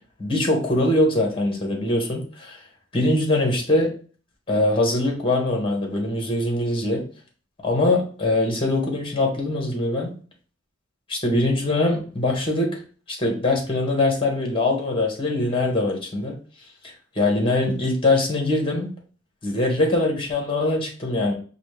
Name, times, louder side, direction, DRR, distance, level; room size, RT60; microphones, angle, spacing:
voice 1, 0.2-2.6 2.9-3.9 4.5-7.0 7.6-10.1 11.1-12.7 13.1-16.4 16.8-18.9 19.4-21.3, left 2 dB, 25° left, 2 dB, 1.3 m, -22 dB
5.1 x 2.4 x 3.3 m, 0.39 s
head